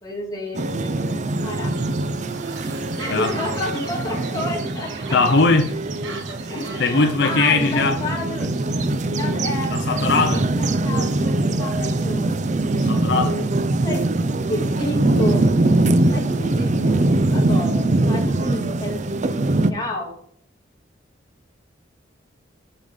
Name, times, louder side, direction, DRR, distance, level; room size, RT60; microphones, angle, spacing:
voice 1, 0.0-1.7 3.0-5.2 6.5-8.5 9.1-9.8 10.1-12.4 13.8-14.1 14.5-15.5 16.1-17.0 17.3-19.1 19.7-20.1, left 1 dB, 20° left, -1 dB, 2.0 m, -30 dB
sound 1, 0.5-19.7, right 2 dB, 40° right, 0.5 m, -22 dB
sound 2, 1.7-9.0, right 5 dB, 80° right, 1.2 m, -42 dB
voice 2, 5.1-5.7 6.8-8.0 9.7-10.4 12.8-13.4, left 3 dB, 60° left, 5 dB, 0.7 m, -19 dB
7.2 x 5.7 x 5.0 m, 0.65 s
head